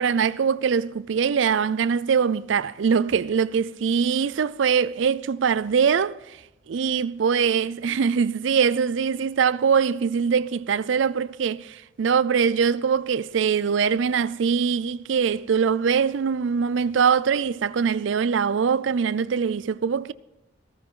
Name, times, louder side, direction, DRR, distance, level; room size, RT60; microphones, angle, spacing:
voice 1, 0.0-6.2 6.7-20.1, right 6 dB, 75° right, 0.4 m, -22 dB
15.5 x 14.5 x 3.8 m
head